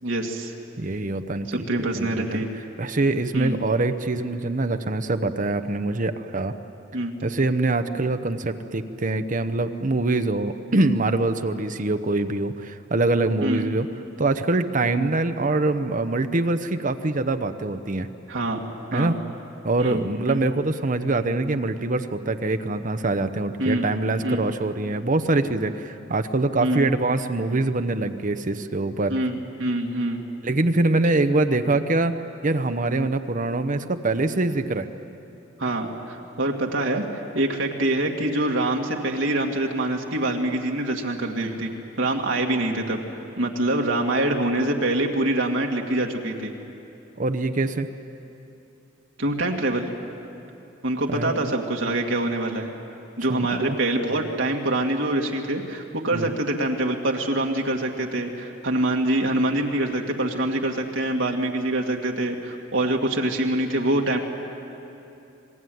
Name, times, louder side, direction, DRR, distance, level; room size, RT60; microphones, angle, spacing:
voice 1, 0.0-0.5 1.5-2.5 3.3-3.6 6.9-7.1 13.4-13.7 18.3-18.6 18.9-19.2 19.8-20.4 23.6-23.8 24.2-24.4 26.6-26.9 29.1-30.2 35.6-41.7 42.0-43.0 43.4-46.5 49.2-49.9 50.8-52.7 53.2-64.2, right 1 dB, 80° right, 1 dB, 2.2 m, -25 dB
voice 2, 0.8-2.4 2.8-6.5 7.2-13.9 14.2-18.1 18.9-19.2 19.6-29.1 30.4-32.2 32.4-34.9 47.2-47.9 51.1-51.5 53.3-53.8 56.1-56.3, right 2 dB, 45° right, 9 dB, 0.9 m, -24 dB
27.5 x 20.5 x 9.4 m, 2.8 s
head